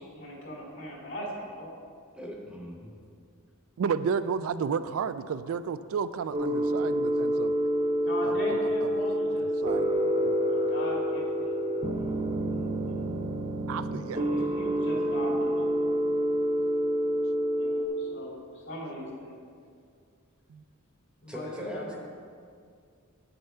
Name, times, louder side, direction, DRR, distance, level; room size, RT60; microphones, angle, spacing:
voice 1, 0.0-1.7 8.0-9.5 10.5-11.6 11.9-12.9 14.1-15.6 17.5-19.4 21.2-22.0, equal, 60° left, -3 dB, 2.3 m, -39 dB
voice 2, 2.1-3.0 21.3-21.9, equal, 5° right, -1 dB, 1.0 m, -40 dB
voice 3, 3.8-7.5 8.2-9.9 10.2-10.4 13.7-14.2 20.5-20.6, right 6 dB, 65° right, 13 dB, 0.3 m, -32 dB
sound 1, 6.3-17.9, equal, 25° right, 0.6 m, -28 dB
8.2 x 6.7 x 5.5 m, 2.2 s
head